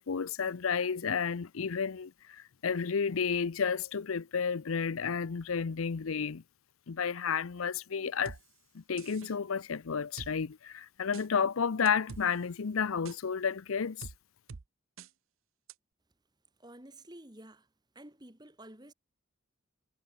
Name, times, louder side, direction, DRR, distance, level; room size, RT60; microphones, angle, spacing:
voice 1, 0.0-6.4 6.9-8.4 8.7-14.1, left 6 dB, 90° left, 0.6 m, -31 dB
sound 1, 8.3-8.4 9.0-9.3 10.2-10.3 11.1-11.3 11.9-12.3 13.1-13.2 14.0-14.2 14.5-14.6 15.0-15.1 15.7-15.8, right 4 dB, 80° right, 0.7 m, -45 dB
voice 2, 16.6-17.7 17.9-18.9, right 1 dB, 20° right, 2.4 m, -51 dB
head